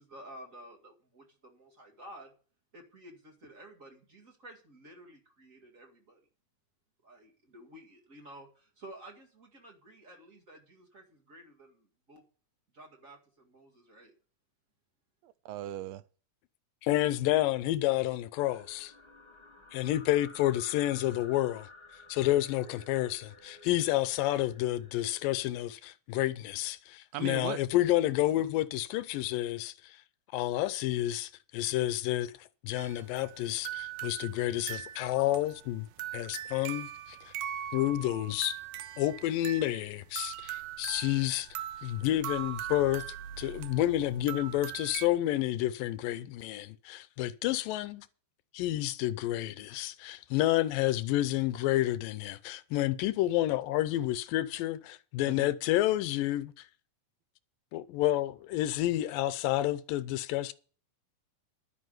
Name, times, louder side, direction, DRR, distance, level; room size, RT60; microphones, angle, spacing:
voice 1, 0.0-2.3 2.7-6.2 7.0-12.2 12.7-14.1, right 1 dB, 30° right, 1.9 m, -52 dB
voice 2, 15.5-16.0 27.1-27.6 55.3-55.5, right 12 dB, 90° right, 2.5 m, -37 dB
voice 3, 16.8-18.9 19.7-21.6 22.1-29.7 30.3-32.3 32.6-35.9 36.1-36.9 37.7-38.6 39.0-41.5 41.8-43.0 43.4-48.1 48.5-56.5 57.7-60.5, left 14 dB, 80° left, 2.3 m, -29 dB
sound 1, 18.4-25.3, left 3 dB, 20° left, 1.4 m, -53 dB
sound 2, 32.8-45.1, right 11 dB, 75° right, 2.1 m, -41 dB
11.5 x 6.1 x 8.0 m
omnidirectional pair, 4.0 m